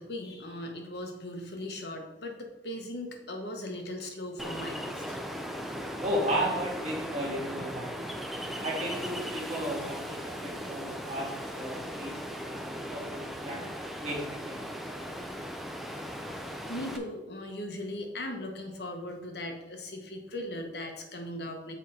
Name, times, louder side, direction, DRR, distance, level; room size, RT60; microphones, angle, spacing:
voice 1, 0.0-5.2 10.6-10.7 13.9-14.1 16.7-21.7, left 1 dB, 65° left, 3 dB, 1.2 m, -39 dB
Ocean, 4.4-17.0, equal, ahead, 0.5 m, -38 dB
voice 2, 6.0-7.9 8.6-13.6 14.0-14.8, equal, 40° right, -5 dB, 2.3 m, -34 dB
6.5 x 4.3 x 5.1 m, 1.1 s
head